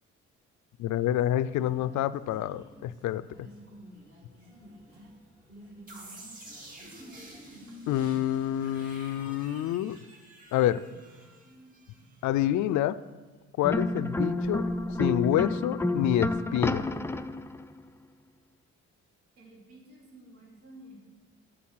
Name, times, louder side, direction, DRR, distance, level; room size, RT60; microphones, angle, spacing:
voice 1, 0.8-3.3 7.9-10.0 10.5-10.8 12.2-13.0 13.6-14.6 15.0-16.9, left 12 dB, 75° left, 16 dB, 0.4 m, -27 dB
sound 1, 0.9-7.7, equal, 45° right, 3.0 m, -53 dB
sound 2, 5.9-12.7, right 1 dB, 30° right, 3.5 m, -49 dB
sound 3, 13.6-17.6, left 2 dB, 10° left, 0.3 m, -29 dB
voice 2, 19.4-21.1, right 1 dB, 80° right, -3 dB, 3.0 m, -51 dB
8.6 x 7.0 x 5.7 m, 1.3 s
cardioid pair, 90°, 30 cm